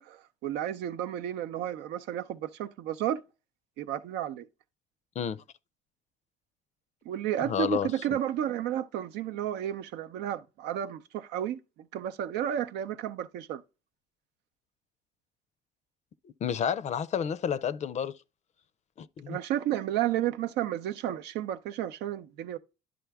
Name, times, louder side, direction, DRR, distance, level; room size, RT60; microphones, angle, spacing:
voice 1, 0.0-3.2 3.8-4.5 7.1-11.6 11.9-13.6 19.3-22.6, right 11 dB, 85° right, 0.6 m, -32 dB
voice 2, 7.4-7.9 16.4-18.2 19.0-19.4, left 8 dB, 45° left, 0.5 m, -30 dB
11.0 x 3.8 x 3.5 m
cardioid pair, 110°, 17 cm